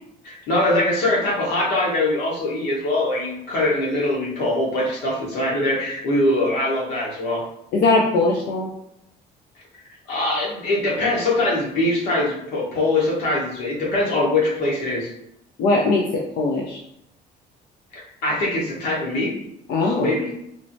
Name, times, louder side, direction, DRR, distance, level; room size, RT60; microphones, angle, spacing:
voice 1, 0.2-7.4 10.1-15.1 17.9-19.3 19.8-20.3, left 1 dB, 85° left, -4 dB, 1.1 m, -22 dB
voice 2, 7.7-8.7 15.6-16.8 19.7-20.1, left 3 dB, 70° left, -1 dB, 0.4 m, -20 dB
3.1 x 2.0 x 2.6 m, 0.77 s
cardioid pair, 110°, 17 cm